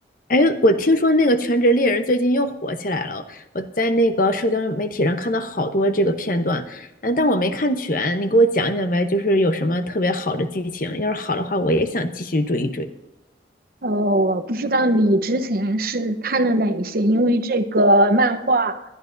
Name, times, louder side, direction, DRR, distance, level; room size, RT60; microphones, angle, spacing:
voice 1, 0.3-12.9, equal, 50° left, 9 dB, 0.9 m, -21 dB
voice 2, 13.8-18.8, right 1 dB, 55° right, 9 dB, 0.9 m, -20 dB
20.0 x 12.0 x 2.6 m, 0.96 s
head